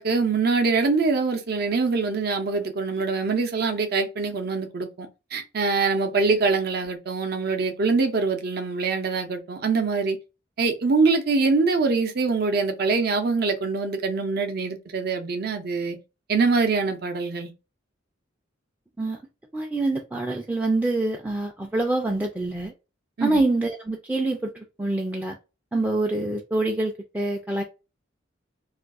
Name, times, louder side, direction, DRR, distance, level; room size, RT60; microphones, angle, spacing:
voice 1, 0.0-10.2 10.6-16.0 16.3-17.5 23.2-23.4, right 4 dB, 55° right, 0.6 m, -24 dB
voice 2, 19.5-22.7 23.2-25.4 25.7-27.6, right 2 dB, 10° right, 0.3 m, -26 dB
2.5 x 2.3 x 3.5 m
head